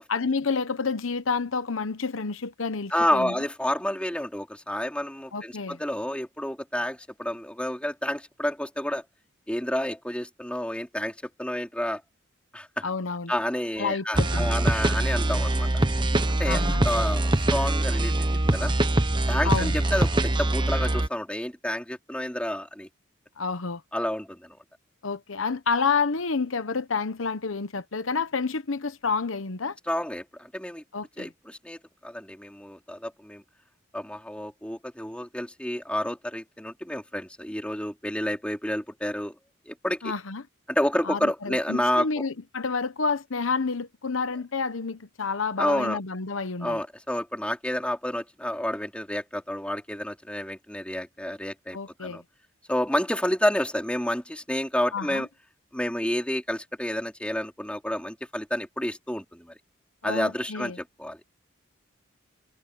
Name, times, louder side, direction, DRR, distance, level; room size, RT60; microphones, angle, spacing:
voice 1, 0.1-3.3 5.3-5.8 12.8-13.3 13.8-14.6 16.5-16.8 19.4-19.8 23.4-23.8 25.0-29.8 30.9-31.3 40.0-40.5 41.0-46.8 51.7-52.2 54.9-55.3 60.0-60.8, left 4 dB, 80° left, 1.0 m, -29 dB
voice 2, 2.9-9.0 9.5-12.0 12.5-12.9 13.3-15.7 16.4-18.3 18.5-18.7 19.3-22.9 23.9-24.6 29.9-30.8 31.2-33.4 33.9-39.4 39.7-40.1 40.7-42.1 45.6-46.0 46.6-52.2 52.7-55.3 55.7-59.5 60.0-61.2, left 1 dB, 5° left, 3.8 m, -29 dB
sound 1, 14.1-21.1, right 1 dB, 25° right, 1.1 m, -23 dB
head